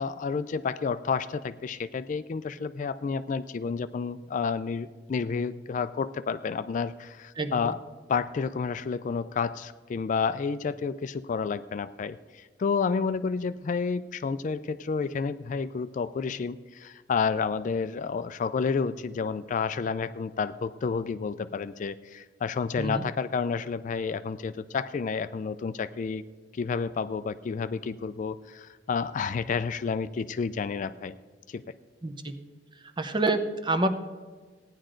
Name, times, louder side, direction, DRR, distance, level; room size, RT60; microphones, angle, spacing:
voice 1, 0.0-7.8 8.1-26.2 26.5-31.2 31.5-31.6, left 5 dB, 45° left, 14 dB, 0.3 m, -30 dB
voice 2, 7.4-7.7 22.8-23.0 32.0-32.3 33.0-33.9, right 2 dB, 25° right, 8 dB, 0.7 m, -27 dB
16.0 x 10.0 x 3.8 m, 1.4 s
head